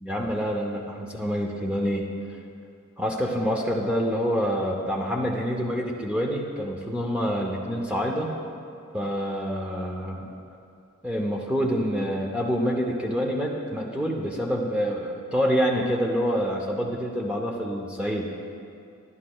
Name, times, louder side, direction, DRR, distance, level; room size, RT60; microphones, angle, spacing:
voice 1, 0.0-2.1 3.0-8.3 8.9-10.3 11.0-18.3, equal, 5° right, -1 dB, 0.6 m, -27 dB
13.5 x 11.0 x 2.3 m, 2.5 s
head